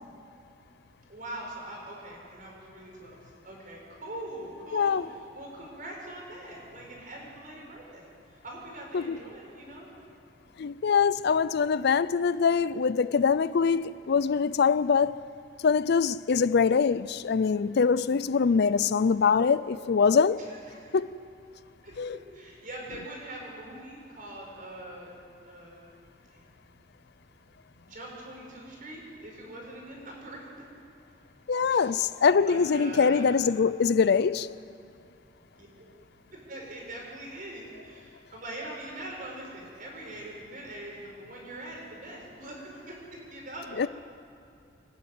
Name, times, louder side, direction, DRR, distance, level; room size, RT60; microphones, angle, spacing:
voice 1, 1.1-5.0 5.3-8.1 8.4-9.9 20.4-20.9 21.8-25.1 25.4-25.9 26.3-26.5 27.8-30.4 31.7-31.9 32.3-33.2 35.5-35.9 36.3-42.9 43.3-43.9, right 1 dB, 45° right, 5.9 m, -43 dB
voice 2, 4.7-5.0 8.9-9.2 10.6-15.2 15.6-20.4 20.9-21.1 22.0-22.2 31.5-34.5 43.8-43.9, left 5 dB, 60° left, 0.4 m, -23 dB
25.5 x 12.0 x 9.5 m
head